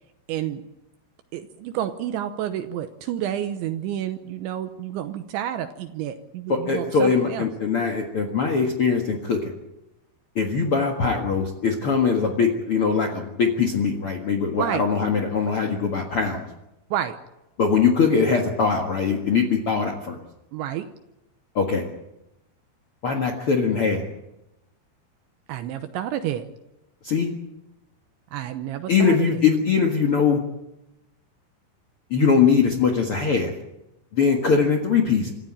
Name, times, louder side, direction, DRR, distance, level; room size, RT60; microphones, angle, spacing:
voice 1, 0.3-0.6 1.3-7.5 14.6-14.8 16.9-17.2 20.5-20.9 25.5-26.4 28.3-29.4, right 11 dB, 80° right, 8 dB, 3.2 m, -30 dB
voice 2, 6.5-9.5 10.3-16.4 17.6-20.2 21.5-21.8 23.0-24.0 27.0-27.3 28.9-30.4 32.1-33.5 34.1-35.3, left 5 dB, 70° left, 2 dB, 1.3 m, -21 dB
26.5 x 14.5 x 8.9 m, 0.93 s
omnidirectional pair, 5.5 m